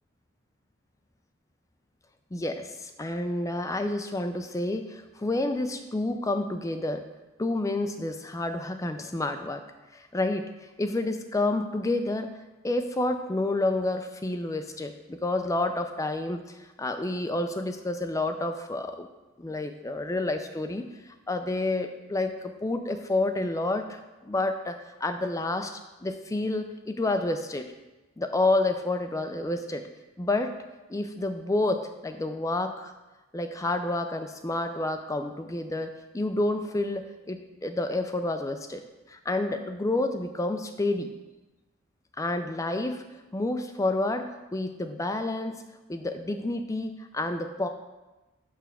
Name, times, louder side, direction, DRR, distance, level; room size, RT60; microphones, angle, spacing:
voice 1, 2.3-7.0 7.4-9.6 9.9-10.4 10.8-12.3 12.6-19.1 19.4-20.9 21.3-24.7 25.0-25.7 26.0-27.7 28.2-29.9 30.2-30.5 30.9-32.9 33.3-38.8 39.1-41.1 42.2-43.1 43.3-45.6 45.9-47.7, left 2 dB, 15° left, 7 dB, 0.4 m, -29 dB
6.8 x 3.4 x 6.1 m, 1.1 s
head